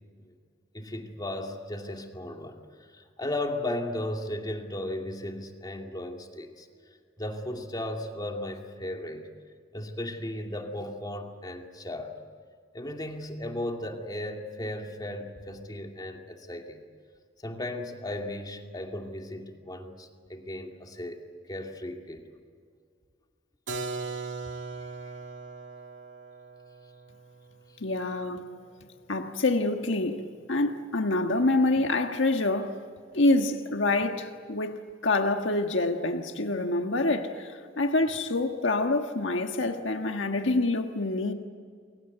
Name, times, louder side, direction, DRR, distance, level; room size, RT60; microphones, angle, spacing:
voice 1, 0.7-2.6 2.9-6.7 7.2-9.3 9.7-12.2 12.7-16.8 17.4-22.3, left 1 dB, 20° left, 2.5 m, -36 dB
Keyboard (musical), 23.7-29.3, right 4 dB, 70° right, 2.4 m, -40 dB
voice 2, 27.8-28.4 29.1-32.8 33.1-41.3, left 2 dB, 70° left, 1.6 m, -26 dB
29.5 x 22.5 x 8.1 m
head